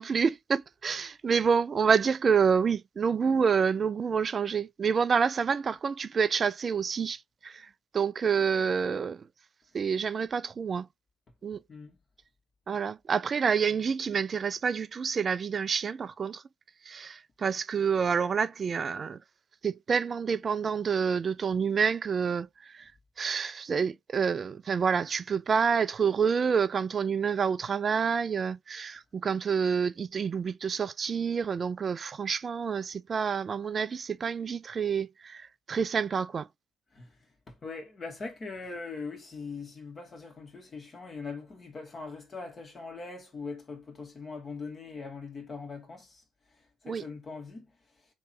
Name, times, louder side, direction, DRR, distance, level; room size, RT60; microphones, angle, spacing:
voice 1, 0.0-9.3 9.7-10.9 11.4-11.6 12.7-16.4 16.8-19.2 19.6-22.9 23.2-36.5 46.8-47.0, right 6 dB, 45° right, 0.3 m, -28 dB
voice 2, 37.5-46.2 46.9-47.7, left 4 dB, 40° left, 1.6 m, -41 dB
3.1 x 3.1 x 4.3 m
hypercardioid pair, 50°, 0 cm